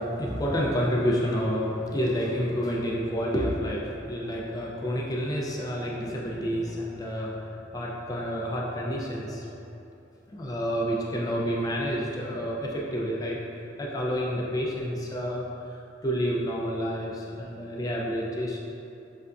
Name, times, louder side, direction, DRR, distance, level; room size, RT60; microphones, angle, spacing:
voice 1, 0.0-7.4 7.7-9.5 10.3-13.4 13.8-18.6, equal, 20° left, -3 dB, 0.3 m, -29 dB
5.5 x 2.4 x 2.2 m, 2.8 s
head